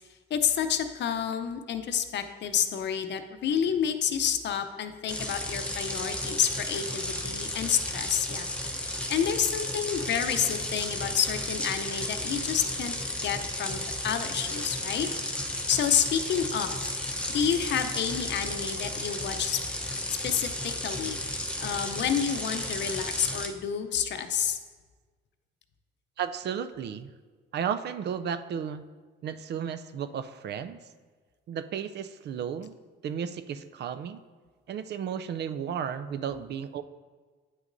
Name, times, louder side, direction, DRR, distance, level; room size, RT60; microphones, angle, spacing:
voice 1, 0.3-8.5 8.9-12.9 13.2-15.1 15.7-16.8 17.3-19.6 20.1-20.5 20.8-21.2 21.6-24.6, left 8 dB, 65° left, 9 dB, 0.6 m, -29 dB
sound 1, 5.1-23.5, left 1 dB, 5° left, 0.8 m, -33 dB
voice 2, 26.2-27.1 27.5-28.8 29.2-30.8 31.5-32.8 33.0-34.2 34.7-36.8, right 8 dB, 60° right, 11 dB, 0.4 m, -33 dB
9.2 x 6.1 x 2.6 m, 1.4 s
cardioid pair, 90°, 20 cm